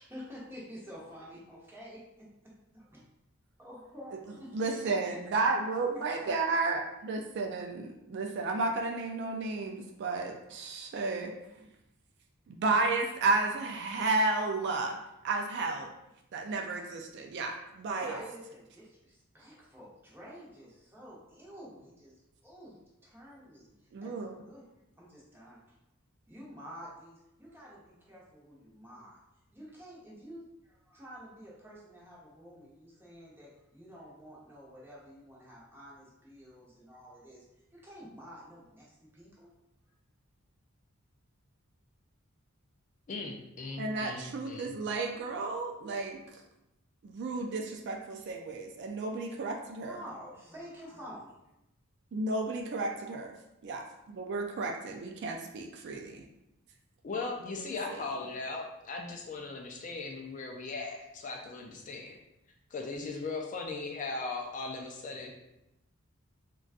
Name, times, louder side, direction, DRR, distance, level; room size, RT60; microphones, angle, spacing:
voice 1, 0.0-3.1 3.6-5.2 5.9-6.0 18.0-22.1 22.4-23.7 24.0-24.6 25.0-25.6 26.3-29.2 29.5-37.4 37.7-39.5 49.8-51.3, equal, 10° right, -6 dB, 0.7 m, -49 dB
voice 2, 4.5-11.3 12.5-15.0 15.2-15.9 16.3-18.2 23.9-24.4 43.8-46.2 47.0-50.0 52.1-53.3 53.6-56.3 57.9-58.0, right 3 dB, 50° right, 3 dB, 0.3 m, -32 dB
voice 3, 43.1-44.8 57.0-62.2 62.7-65.3, left 3 dB, 35° left, 1 dB, 0.3 m, -38 dB
3.8 x 2.3 x 2.4 m, 0.89 s
head